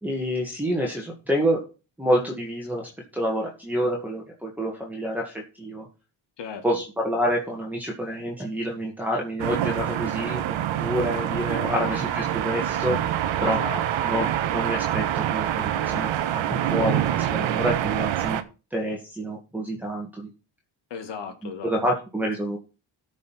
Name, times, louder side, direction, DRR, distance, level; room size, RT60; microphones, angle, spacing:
voice 1, 0.0-1.7 2.0-5.9 6.6-13.0 13.4-13.6 14.0-18.4 18.7-20.3 21.6-22.6, equal, 5° right, 2.0 m, -28 dB
voice 2, 6.4-6.8 11.7-12.0 13.4-14.1 14.4-14.5 20.9-21.7, left 6 dB, 65° left, 2.1 m, -37 dB
sound 1, 9.4-18.4, right 11 dB, 75° right, 1.2 m, -26 dB
13.5 x 5.4 x 5.9 m
cardioid pair, 125°, 46 cm